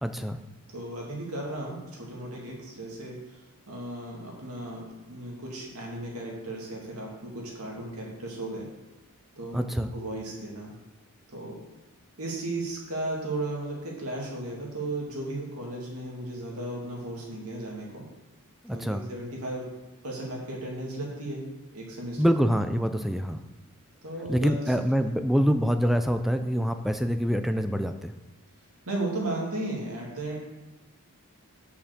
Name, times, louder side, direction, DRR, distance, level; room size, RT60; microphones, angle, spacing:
voice 1, 0.0-0.4 9.5-9.9 18.6-19.0 22.2-23.4 24.3-28.1, equal, ahead, 8 dB, 0.3 m, -25 dB
voice 2, 0.7-8.7 9.4-10.7 11.3-11.6 12.2-18.0 18.7-19.6 20.0-21.4 21.7-22.3 24.0-24.7 25.1-25.2 28.9-30.4, right 2 dB, 80° right, -3 dB, 2.4 m, -35 dB
6.9 x 5.7 x 6.7 m, 1.2 s
head